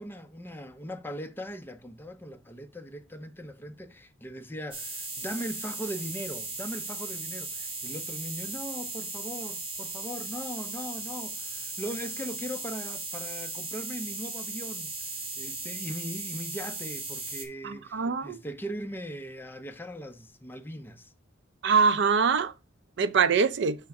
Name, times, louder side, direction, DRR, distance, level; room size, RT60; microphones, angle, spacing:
voice 1, 0.0-14.9 15.4-21.1, equal, 10° left, 0.6 m, -39 dB
sound 1, 4.7-17.5, right 3 dB, 30° right, 1.5 m, -37 dB
voice 2, 17.6-18.4 21.6-22.5 23.0-23.8, right 5 dB, 60° right, 0.5 m, -23 dB
5.8 x 3.6 x 5.2 m
head